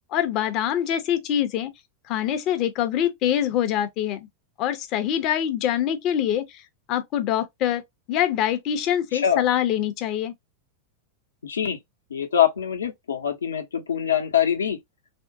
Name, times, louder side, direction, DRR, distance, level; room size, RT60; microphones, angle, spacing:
voice 1, 0.1-1.7 2.1-4.2 4.6-6.4 6.9-7.8 8.1-10.3, left 10 dB, 40° left, 0.7 m, -24 dB
voice 2, 9.1-9.4 11.4-11.8 12.1-14.8, left 9 dB, 70° left, 0.8 m, -24 dB
3.5 x 2.2 x 2.7 m
figure-of-eight pair, 90°, 0 cm